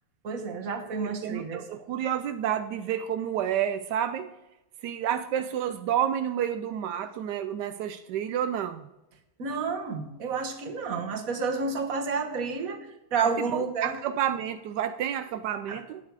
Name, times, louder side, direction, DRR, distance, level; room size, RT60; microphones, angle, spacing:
voice 1, 0.2-1.6 9.4-14.0 15.7-15.8, right 5 dB, 45° right, 5 dB, 1.5 m, -30 dB
voice 2, 1.0-4.3 4.8-8.9 13.2-16.0, right 10 dB, 80° right, 10 dB, 0.9 m, -30 dB
11.5 x 8.8 x 4.8 m, 0.95 s
omnidirectional pair, 2.4 m